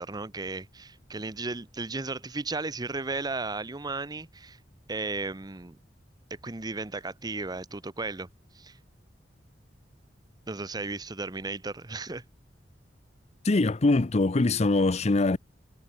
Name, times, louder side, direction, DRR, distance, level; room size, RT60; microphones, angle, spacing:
voice 1, 0.0-4.6 4.9-5.8 6.4-8.3 8.5-8.8 10.5-12.2, right 3 dB, 25° right, 0.8 m, -35 dB
voice 2, 13.4-15.4, left 2 dB, 40° left, 0.7 m, -23 dB
head